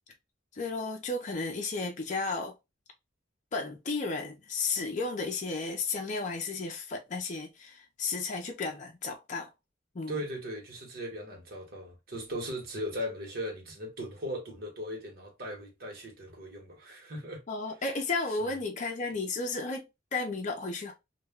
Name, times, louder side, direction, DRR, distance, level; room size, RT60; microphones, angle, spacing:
voice 1, 0.5-2.5 3.5-9.5 9.9-10.2 17.5-19.9 20.1-20.9, left 3 dB, 40° left, 0.5 m, -33 dB
voice 2, 10.1-17.4 18.4-18.6, equal, 50° right, 1.1 m, -38 dB
2.3 x 2.1 x 3.4 m
head